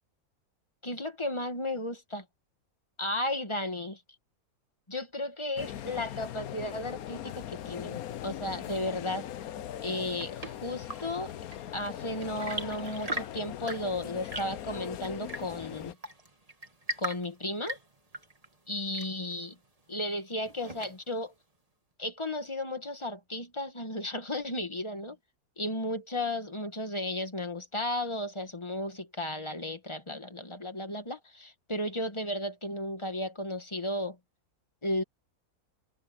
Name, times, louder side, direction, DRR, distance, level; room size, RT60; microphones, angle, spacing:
voice 1, 0.8-2.2 3.0-4.0 4.9-9.2 9.8-11.3 11.7-16.0 17.0-17.8 18.7-19.5 19.9-21.3 22.0-25.2 25.6-34.2 34.8-35.0, left 1 dB, 20° left, 1.5 m, -34 dB
sound 1, 5.6-15.9, left 11 dB, 75° left, 1.2 m, -40 dB
Chirp tweet / Engine / Tap, 9.8-21.3, right 1 dB, 25° right, 2.3 m, -42 dB
omnidirectional pair, 1.5 m